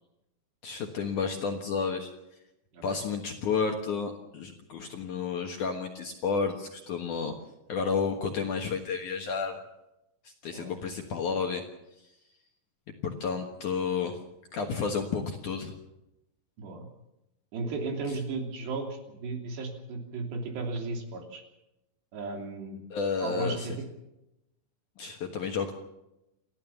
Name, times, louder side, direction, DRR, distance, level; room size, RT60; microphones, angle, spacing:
voice 1, 0.6-2.1 2.8-7.3 7.7-9.6 10.2-11.6 12.0-12.1 13.0-14.2 14.5-15.7 22.9-23.7 25.0-25.7, left 5 dB, 60° left, 3 dB, 2.2 m, -31 dB
voice 2, 17.5-21.4 22.1-22.8 23.2-23.9, right 3 dB, 65° right, 3 dB, 5.2 m, -35 dB
29.0 x 13.0 x 7.1 m, 0.91 s
omnidirectional pair, 5.3 m